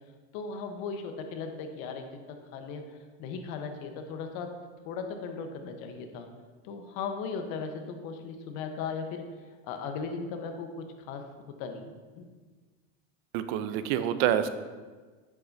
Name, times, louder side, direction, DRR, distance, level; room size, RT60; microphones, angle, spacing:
voice 1, 0.3-2.8 3.2-4.5 4.8-6.3 6.6-9.3 9.6-12.3, left 5 dB, 65° left, 5 dB, 1.1 m, -37 dB
voice 2, 13.3-14.5, right 10 dB, 70° right, 11 dB, 0.7 m, -27 dB
8.6 x 7.3 x 2.7 m, 1.4 s
supercardioid pair, 105°, 37 cm